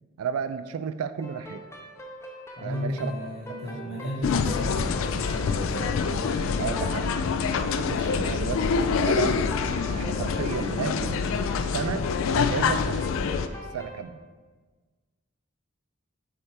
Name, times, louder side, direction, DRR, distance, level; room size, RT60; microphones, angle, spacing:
voice 1, 0.2-1.6 2.6-3.1 3.5-3.9 6.6-9.4 9.9-11.2 11.5-12.1 12.4-13.2 13.7-14.2, right 7 dB, 90° right, 12 dB, 0.4 m, -33 dB
sound 1, 1.2-14.0, left 1 dB, 10° left, 0.6 m, -41 dB
voice 2, 2.6-5.9, left 1 dB, 45° left, -5 dB, 0.8 m, -34 dB
sound 2, 4.2-13.5, left 5 dB, 70° left, 0.3 m, -26 dB
7.1 x 3.3 x 4.3 m, 1.4 s
head